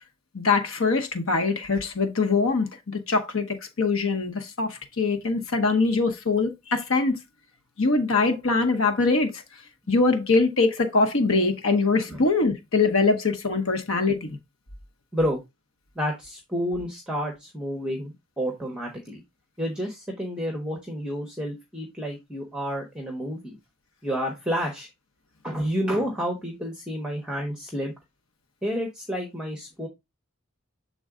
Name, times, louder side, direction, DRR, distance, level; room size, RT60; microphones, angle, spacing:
voice 1, 0.3-7.2 7.8-9.3 9.9-14.4, left 3 dB, 65° left, 1.0 m, -23 dB
voice 2, 16.0-19.2 19.6-23.6 24.0-24.9 25.4-27.9 28.6-29.9, equal, 5° right, 1.1 m, -30 dB
7.4 x 3.9 x 3.6 m
head